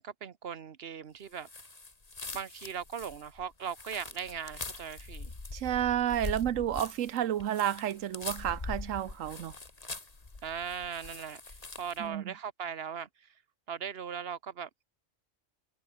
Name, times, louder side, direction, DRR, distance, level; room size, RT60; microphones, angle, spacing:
voice 1, 0.0-1.5 2.3-5.3 6.3-6.7 10.4-13.3 13.7-14.7, right 7 dB, 55° right, 1.3 m, -39 dB
sound 1, 1.4-12.1, left 3 dB, 30° left, 2.0 m, -43 dB
voice 2, 5.5-9.5 12.0-12.3, right 11 dB, 90° right, 1.2 m, -31 dB
omnidirectional pair, 1.3 m